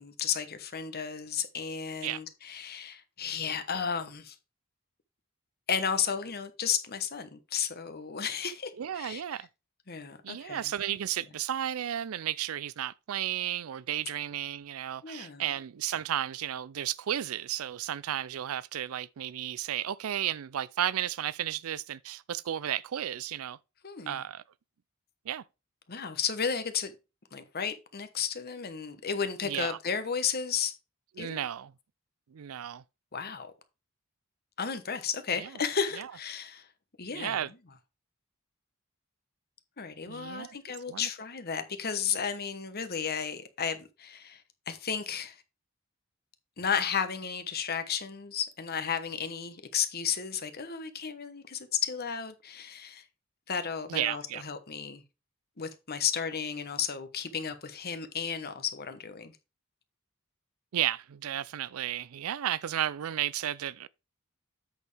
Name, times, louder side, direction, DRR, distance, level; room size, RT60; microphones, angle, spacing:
voice 1, 0.0-4.3 5.7-9.2 9.9-10.7 15.0-15.4 23.8-24.2 25.9-26.9 27.3-30.7 31.2-31.4 33.1-33.5 34.6-36.7 37.0-37.4 39.8-45.4 46.6-53.0 53.5-55.0 55.6-59.3, left 7 dB, 45° left, 1.1 m, -33 dB
voice 2, 8.8-9.5 10.2-23.6 24.1-24.4 25.3-25.4 29.4-29.8 31.2-31.7 32.3-32.8 35.4-35.5 36.0-36.1 37.1-37.5 40.1-40.6 40.9-41.1 53.9-54.4 60.7-63.9, right 11 dB, 85° right, 0.4 m, -33 dB
8.0 x 6.6 x 3.3 m
head